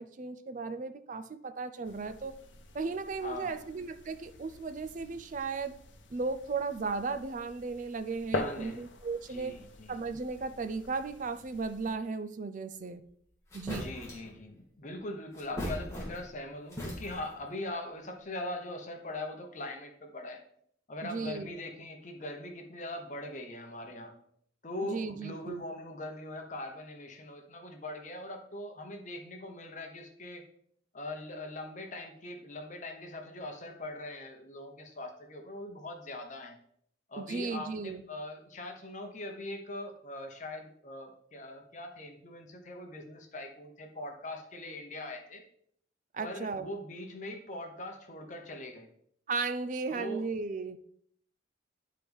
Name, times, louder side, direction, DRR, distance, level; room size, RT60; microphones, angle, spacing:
voice 1, 0.0-2.3 2.7-5.7 6.1-9.6 9.9-13.0 13.5-13.9 21.0-21.5 24.8-25.6 37.2-38.0 46.1-46.7 49.3-50.8, right 4 dB, 45° right, 11 dB, 0.4 m, -35 dB
sound 1, 1.8-11.9, left 2 dB, 75° left, 0.7 m, -44 dB
voice 2, 3.2-3.6 8.3-8.9 9.3-10.0 13.7-20.4 20.9-24.2 24.6-30.5 30.9-36.6 37.1-45.4 46.2-48.9 49.9-50.3, left 1 dB, 40° left, 4 dB, 1.0 m, -41 dB
sound 2, 13.1-13.2 13.5-14.3 15.3-16.4 16.7-17.4, equal, 15° left, 1.9 m, -39 dB
10.0 x 4.6 x 3.5 m, 0.67 s
head